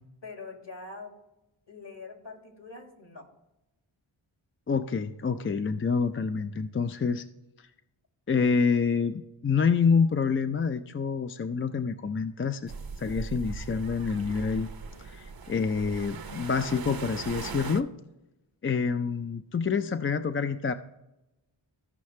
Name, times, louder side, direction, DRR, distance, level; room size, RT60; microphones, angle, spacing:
voice 1, 0.2-1.1 1.7-3.3, left 3 dB, 60° left, 2 dB, 2.2 m, -43 dB
voice 2, 4.7-7.3 8.3-14.7 15.0-17.9 18.6-20.7, left 5 dB, 25° left, 9 dB, 0.4 m, -27 dB
sound 1, 12.7-17.8, right 5 dB, 45° right, 0.7 m, -39 dB
15.0 x 5.6 x 3.2 m, 0.94 s
cardioid pair, 45°, 49 cm